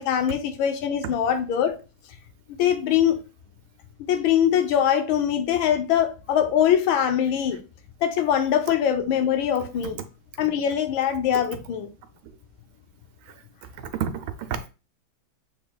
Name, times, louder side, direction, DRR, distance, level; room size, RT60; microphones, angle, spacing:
voice 1, 0.0-1.8 2.6-3.2 4.1-7.6 8.0-10.0 10.4-11.9, left 9 dB, 80° left, 1.5 m, -22 dB
voice 2, 13.8-14.7, right 8 dB, 90° right, 1.5 m, -30 dB
7.2 x 3.2 x 2.2 m
omnidirectional pair, 2.2 m